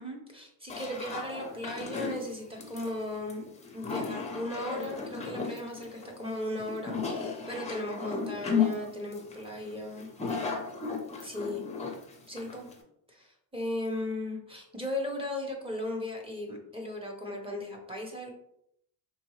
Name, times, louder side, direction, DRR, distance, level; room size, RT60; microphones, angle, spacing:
voice 1, 0.0-3.4 3.7-10.1 11.2-11.6 12.3-12.7 13.1-18.3, left 1 dB, 10° right, 0 dB, 0.9 m, -36 dB
sound 1, 0.7-12.8, left 5 dB, 15° left, 0.6 m, -35 dB
4.3 x 3.2 x 3.1 m, 0.74 s
cardioid pair, 145°, 46 cm